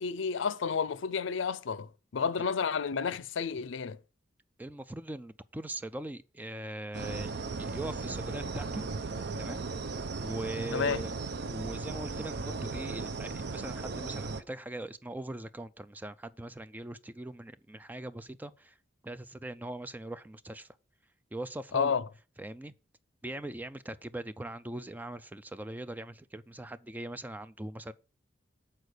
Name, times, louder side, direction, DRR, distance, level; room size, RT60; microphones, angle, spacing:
voice 1, 0.0-4.0 10.7-11.0 21.7-22.1, left 6 dB, 80° left, 0.5 m, -31 dB
voice 2, 4.6-7.3 7.6-8.8 9.4-9.6 10.2-11.1 11.4-18.7 19.0-20.7 21.3-21.9 22.4-22.7 23.2-27.9, right 1 dB, 10° right, 0.3 m, -41 dB
sound 1, 6.9-14.4, right 3 dB, 60° right, 0.6 m, -36 dB
8.3 x 4.4 x 6.4 m
head